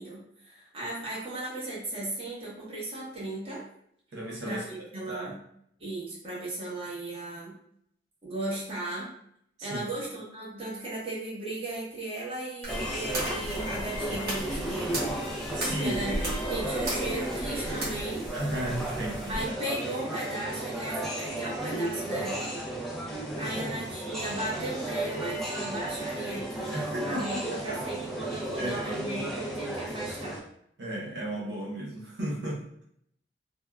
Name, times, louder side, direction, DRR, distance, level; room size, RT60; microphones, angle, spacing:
voice 1, 0.0-3.6 4.5-5.4 5.8-7.5 8.2-9.1 9.6-15.2 15.8-16.2 16.5-18.3 19.3-22.5 23.4-30.4, right 2 dB, 30° right, -6 dB, 0.9 m, -36 dB
voice 2, 4.1-5.3 9.6-9.8 15.5-16.0 18.3-19.4 23.5-23.9 26.7-27.8 28.5-28.9 30.8-32.8, right 1 dB, 75° right, -4 dB, 0.6 m, -34 dB
sound 1, 12.6-19.4, right 1 dB, 60° right, 1.0 m, -36 dB
sound 2, 12.7-30.4, right 1 dB, ahead, 0.4 m, -34 dB
3.4 x 2.2 x 2.2 m, 0.69 s
head